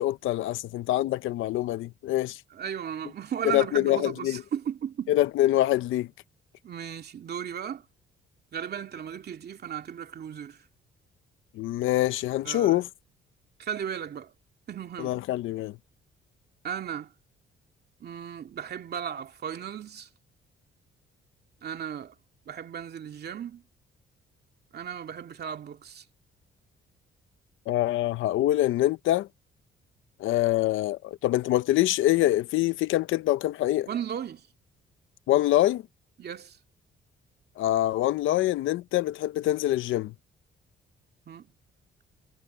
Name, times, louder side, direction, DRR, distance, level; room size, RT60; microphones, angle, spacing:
voice 1, 0.0-2.4 3.4-4.4 5.1-6.1 11.6-12.9 15.0-15.8 27.7-29.3 30.2-33.9 35.3-35.8 37.6-40.1, left 14 dB, 80° left, 0.7 m, -25 dB
voice 2, 2.5-5.1 6.6-7.8 8.5-10.6 12.4-12.8 13.6-14.3 14.7-15.2 16.6-17.1 18.0-20.1 21.6-22.1 22.5-23.6 24.7-26.0 33.9-34.5 36.2-36.6 41.3-41.5, right 8 dB, 55° right, 2.5 m, -35 dB
cardioid pair, 90°, 20 cm